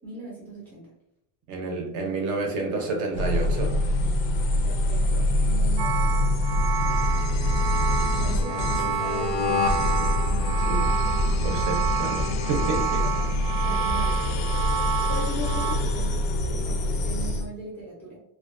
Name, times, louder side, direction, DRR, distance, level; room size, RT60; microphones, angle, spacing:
voice 1, 0.0-0.9 4.6-6.2 8.2-10.1 12.9-13.3 13.6-14.4 15.1-18.2, right 2 dB, 5° left, -9 dB, 0.5 m, -38 dB
voice 2, 1.5-3.8 10.6-11.0 11.2-13.0, right 3 dB, 45° right, 1 dB, 0.6 m, -30 dB
sound 1, 3.1-17.5, left 1 dB, 75° left, 0.5 m, -25 dB
sound 2, 5.8-15.8, right 9 dB, 85° right, 0.7 m, -30 dB
2.3 x 2.2 x 2.4 m, 0.83 s
cardioid pair, 175°, 41 cm